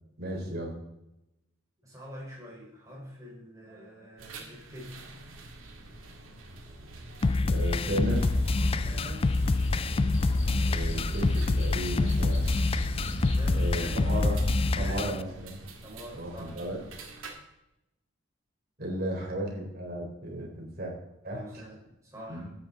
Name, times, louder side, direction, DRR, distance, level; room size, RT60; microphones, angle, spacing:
voice 1, 0.2-0.8 7.4-8.3 10.6-12.5 13.5-14.4 14.8-15.6 16.1-16.8 18.8-20.9 21.2-21.6 22.3-22.5, right 1 dB, 45° right, -1 dB, 3.8 m, -34 dB
voice 2, 1.8-4.9 8.8-9.3 13.3-14.1 14.7-15.2 15.8-16.6 21.3-21.8 22.0-22.5, equal, 15° right, -3 dB, 4.4 m, -44 dB
sound 1, 4.2-17.3, right 2 dB, 75° right, 2.2 m, -47 dB
sound 2, 7.2-15.2, left 3 dB, 25° left, 0.3 m, -26 dB
sound 3, 8.2-14.9, equal, 65° left, 2.3 m, -35 dB
13.0 x 9.3 x 4.0 m, 0.88 s
head